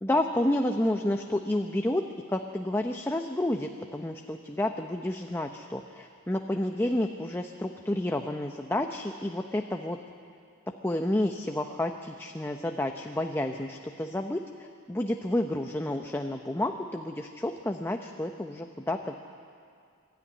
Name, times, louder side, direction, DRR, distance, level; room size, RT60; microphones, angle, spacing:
voice 1, 0.0-2.0 2.3-10.0 10.8-19.2, left 1 dB, 10° left, 4 dB, 0.7 m, -30 dB
24.5 x 13.0 x 9.7 m, 2.2 s
head